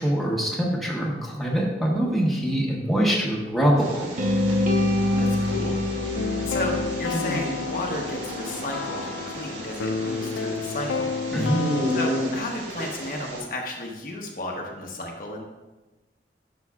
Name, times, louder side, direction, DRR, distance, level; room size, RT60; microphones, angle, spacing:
voice 1, 0.0-4.1 11.3-11.6, equal, ahead, -4 dB, 1.2 m, -24 dB
sound 1, 3.8-13.4, equal, 80° right, 2.1 m, -33 dB
sound 2, 4.2-8.2, left 1 dB, 45° right, 1.0 m, -25 dB
voice 2, 5.0-5.8 6.0-11.1 11.9-15.4, left 1 dB, 50° left, 0 dB, 1.0 m, -33 dB
sound 3, 6.1-12.2, left 5 dB, 80° left, 0.4 m, -31 dB
10.5 x 6.3 x 2.4 m, 1.1 s
head